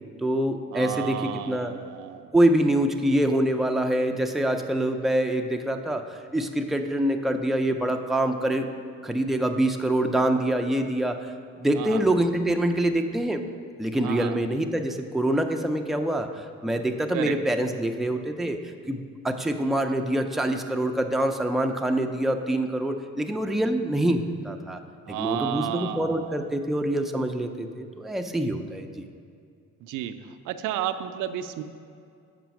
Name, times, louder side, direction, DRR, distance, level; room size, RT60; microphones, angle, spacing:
voice 1, 0.2-1.7 2.3-6.0 6.3-8.7 9.0-11.3 11.6-13.4 13.8-18.6 18.9-24.8 25.1-28.9, right 1 dB, ahead, 4 dB, 0.5 m, -25 dB
voice 2, 0.7-2.3 11.7-12.0 14.0-14.4 17.1-17.4 25.1-26.5 29.8-30.2 30.4-31.6, right 11 dB, 90° right, 9 dB, 0.5 m, -32 dB
7.4 x 5.1 x 5.9 m, 2.4 s
cardioid pair, 90°, 30 cm